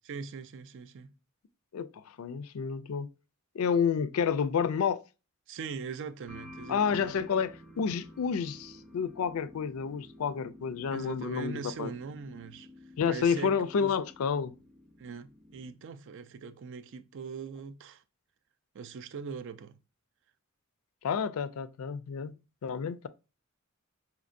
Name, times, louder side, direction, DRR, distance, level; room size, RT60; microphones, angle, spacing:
voice 1, 0.1-1.1 5.5-7.1 10.9-12.7 13.1-14.0 15.0-18.0 18.7-19.8, right 5 dB, 60° right, 0.4 m, -41 dB
voice 2, 2.2-3.1 3.6-5.0 6.7-11.9 13.0-14.5 21.0-22.3 22.6-23.1, left 6 dB, 70° left, 0.4 m, -30 dB
sound 1, 6.3-15.8, left 1 dB, ahead, 0.5 m, -51 dB
5.1 x 2.8 x 2.5 m
head